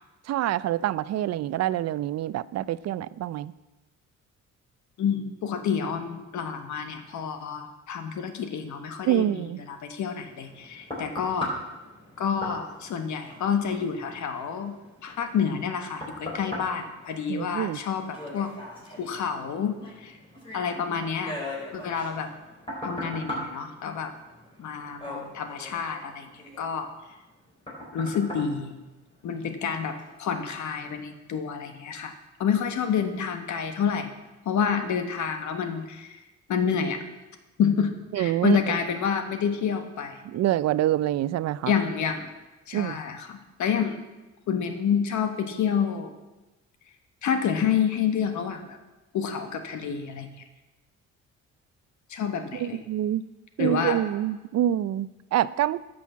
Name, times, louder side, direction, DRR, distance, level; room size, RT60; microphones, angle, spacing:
voice 1, 0.3-3.5 9.1-9.6 17.3-17.8 38.1-38.6 40.2-41.7 42.7-43.0 52.6-53.2 53.6-55.8, right 12 dB, 60° right, 18 dB, 0.4 m, -26 dB
voice 2, 5.0-9.4 9.7-11.5 12.2-14.7 15.0-18.5 19.0-20.2 20.5-21.3 21.7-22.3 22.8-24.1 24.6-26.9 27.9-28.8 29.2-32.1 32.4-34.1 34.4-36.2 36.5-37.0 37.6-40.2 41.7-42.3 42.7-44.0 44.5-46.1 47.2-48.8 49.1-50.3 52.1-52.8 53.6-54.0, left 7 dB, 70° left, 7 dB, 1.3 m, -28 dB
sound 1, 10.2-29.5 30.0-30.1, left 1 dB, 20° left, 4.4 m, -40 dB
10.0 x 6.3 x 7.2 m, 1.1 s
cardioid pair, 90°, 30 cm